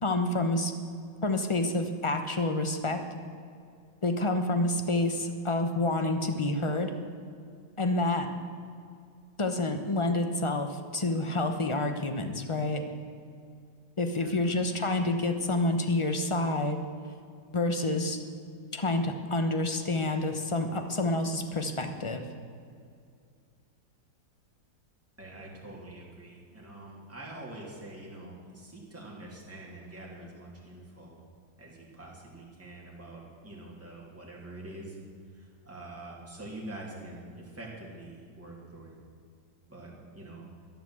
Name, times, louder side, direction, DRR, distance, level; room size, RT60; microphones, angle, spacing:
voice 1, 0.0-0.7 1.2-3.0 4.0-6.9 7.8-8.3 9.4-12.8 14.0-16.8 17.5-18.2 18.7-22.2, left 2 dB, 30° left, 7 dB, 0.5 m, -28 dB
voice 2, 14.2-14.8 25.2-31.2 31.6-35.0 35.3-38.9 39.7-40.4, right 1 dB, 5° right, -4 dB, 3.0 m, -45 dB
12.0 x 11.0 x 7.7 m, 2.3 s
omnidirectional pair, 2.0 m